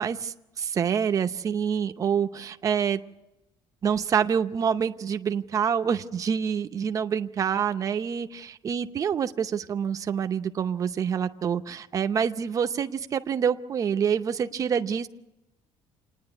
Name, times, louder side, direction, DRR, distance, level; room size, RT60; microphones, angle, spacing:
voice 1, 0.0-3.0 3.8-8.3 8.6-15.1, right 7 dB, 30° right, 8 dB, 0.7 m, -26 dB
27.5 x 9.9 x 9.8 m, 0.95 s
cardioid pair, 170°, 12 cm